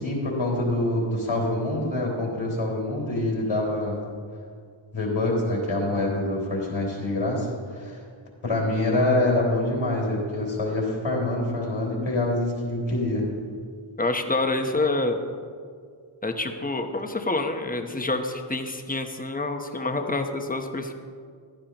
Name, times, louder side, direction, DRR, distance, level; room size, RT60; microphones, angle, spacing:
voice 1, 0.0-4.1 4.9-8.0 8.4-13.3, left 1 dB, 80° left, -3 dB, 3.6 m, -25 dB
voice 2, 14.0-15.2 16.2-20.9, left 2 dB, 15° left, 5 dB, 0.9 m, -27 dB
15.0 x 12.0 x 3.0 m, 2.1 s
wide cardioid pair, 90°, 48 cm